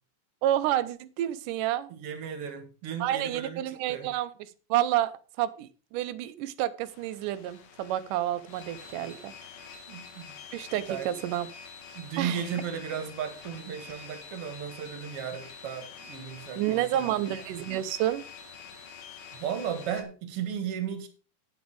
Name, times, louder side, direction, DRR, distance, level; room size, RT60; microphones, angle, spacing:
voice 1, 0.4-1.9 3.0-4.3 4.7-5.1 5.4-9.3 10.5-11.5 12.2-12.6 16.6-18.2, right 13 dB, 85° right, 14 dB, 2.3 m, -29 dB
voice 2, 1.9-4.1 9.9-10.3 10.9-11.2 11.9-17.2 19.4-21.1, right 8 dB, 50° right, 8 dB, 2.3 m, -35 dB
sound 1, 6.8-20.0, left 6 dB, 60° left, 2.4 m, -47 dB
9.8 x 8.2 x 4.8 m, 0.36 s
omnidirectional pair, 3.7 m